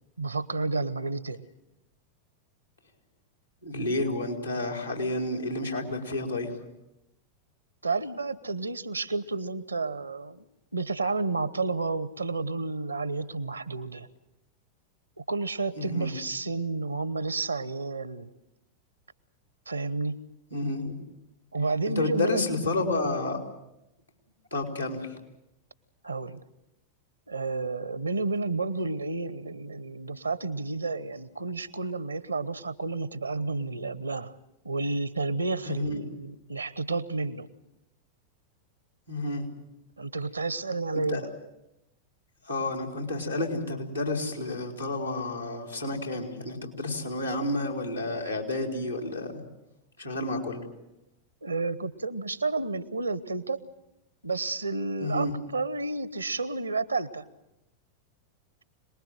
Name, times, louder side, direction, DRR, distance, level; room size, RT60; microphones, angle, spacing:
voice 1, 0.2-1.4 7.8-10.5 10.7-14.1 15.3-18.3 19.7-20.2 21.5-22.4 26.0-26.4 27.3-34.3 34.6-37.5 40.0-41.3 51.4-53.6 54.2-57.2, right 3 dB, 80° right, 17 dB, 1.0 m, -31 dB
voice 2, 3.6-6.6 15.8-16.2 20.5-20.9 21.8-23.4 24.5-25.1 35.7-36.0 39.1-39.5 40.9-41.2 42.5-49.4 50.0-50.6 55.0-55.3, left 2 dB, 85° left, 3 dB, 4.3 m, -30 dB
26.5 x 20.5 x 7.7 m, 0.89 s
figure-of-eight pair, 90°, 0 cm